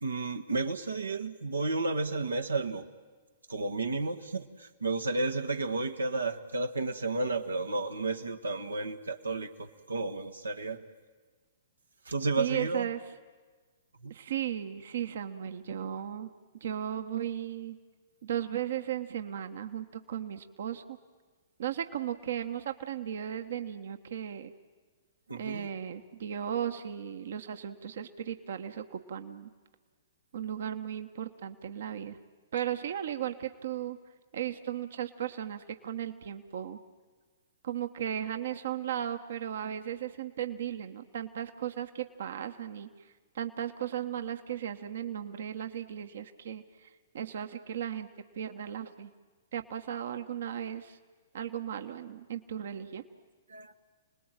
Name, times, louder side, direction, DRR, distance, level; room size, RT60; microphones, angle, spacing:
voice 1, 0.0-2.8 3.5-10.8 12.0-12.9 14.0-14.1 25.3-25.7 53.5-53.7, right 3 dB, 90° right, 5 dB, 1.4 m, -32 dB
voice 2, 12.4-13.0 14.1-16.3 16.6-17.8 18.2-21.0 21.6-24.5 25.3-29.5 30.3-32.2 32.5-34.0 34.3-36.8 37.6-42.9 43.3-48.1 48.3-49.1 49.5-51.0 51.3-53.0, right 10 dB, 65° right, 8 dB, 1.3 m, -36 dB
29.0 x 20.0 x 9.0 m, 1.4 s
hypercardioid pair, 120°, 0 cm